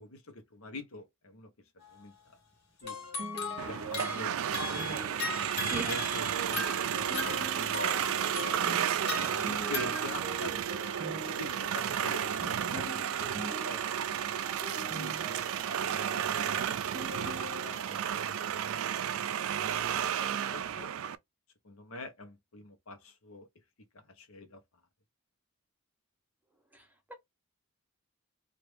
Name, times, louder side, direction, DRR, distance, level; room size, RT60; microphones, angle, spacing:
voice 1, 0.0-1.5 1.9-2.1 2.8-3.0 3.4-4.8 5.8-8.2 9.1-11.0 11.4-13.1 13.4-13.8 14.8-15.6 16.0-16.8 17.0-18.9 19.6-20.9 21.6-23.5 23.9-24.6, left 2 dB, 75° left, 0.9 m, -46 dB
sound 1, 1.8-2.0 2.8-10.2, left 4 dB, 50° left, 1.5 m, -39 dB
sound 2, 2.8-18.1, equal, 30° right, 1.3 m, -45 dB
sound 3, 3.6-21.2, right 9 dB, 70° right, 0.3 m, -32 dB
voice 2, 5.5-5.9 6.6-6.7 26.7-27.1, right 2 dB, 10° right, 0.8 m, -42 dB
2.9 x 2.5 x 3.2 m
head